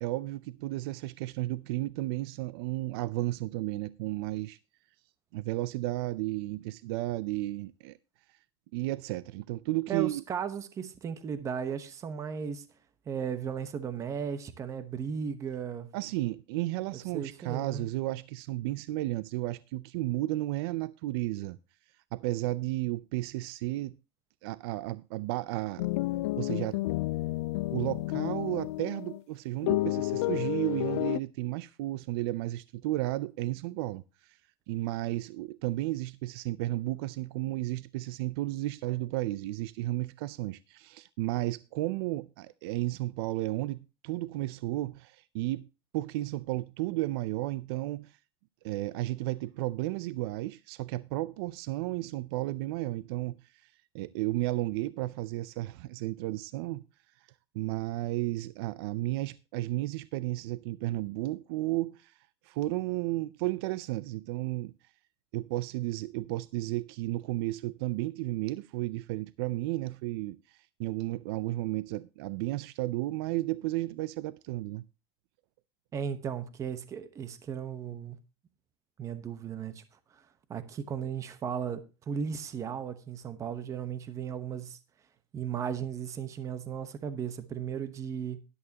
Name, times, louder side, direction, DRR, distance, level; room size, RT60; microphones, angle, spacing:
voice 1, 0.0-4.6 5.3-8.0 8.7-10.2 15.9-21.6 22.1-24.0 24.4-25.9 26.4-26.8 27.7-34.4 34.7-45.7 45.9-48.2 48.6-56.8 57.5-62.2 62.4-64.7 65.3-74.8, right 17 dB, 60° right, 0.5 m, -33 dB
voice 2, 9.9-12.6 13.1-15.9 17.1-17.9 75.9-78.2 79.0-79.8 80.1-80.2 80.5-84.8 85.3-88.4, right 7 dB, 20° right, 1.0 m, -36 dB
sound 1, 25.8-29.2 29.6-31.2, left 18 dB, 70° left, 0.5 m, -31 dB
13.0 x 11.0 x 2.8 m
supercardioid pair, 155°, 15 cm